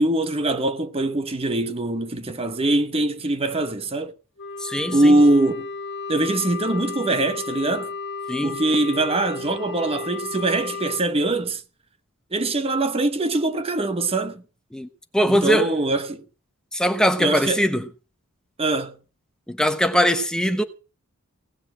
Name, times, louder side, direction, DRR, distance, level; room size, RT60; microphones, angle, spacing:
voice 1, 0.0-4.1 4.9-5.7 6.1-7.9 8.4-11.6 12.3-14.4 15.3-16.2 17.2-17.7 18.6-19.0, right 2 dB, 25° right, 1.0 m, -22 dB
Wind instrument woodwind instrument, 4.4-11.1, left 4 dB, 50° left, 1.8 m, -33 dB
voice 2, 4.6-5.1 8.3-8.5 14.7-14.9 15.1-15.7 16.7-17.9 19.5-20.6, equal, 5° left, 1.0 m, -21 dB
18.0 x 7.2 x 7.6 m
head